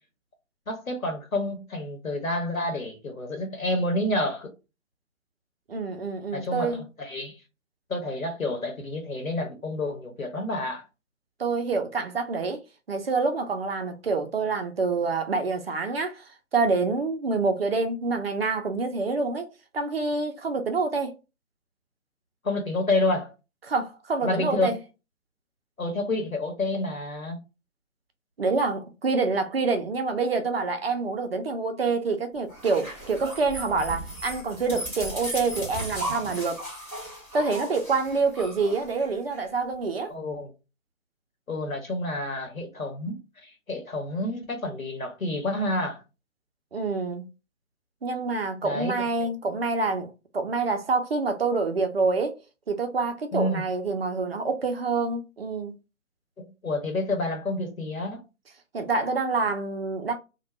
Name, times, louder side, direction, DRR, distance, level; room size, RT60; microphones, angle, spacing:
voice 1, 0.7-4.5 6.3-7.4 7.9-10.8 22.4-23.3 24.2-24.7 25.8-27.4 40.1-40.5 41.5-46.0 48.6-49.3 53.3-53.7 56.4-58.2, left 2 dB, 85° left, 1.1 m, -29 dB
voice 2, 5.7-6.8 11.4-12.6 12.9-19.5 19.7-21.1 23.7-24.8 28.4-36.6 37.3-40.1 46.7-47.3 48.0-52.3 52.7-55.7 58.7-60.1, right 4 dB, 50° right, 0.5 m, -27 dB
sound 1, 32.5-39.4, right 1 dB, 10° left, 0.6 m, -36 dB
2.4 x 2.2 x 3.0 m
figure-of-eight pair, 145°, 40 cm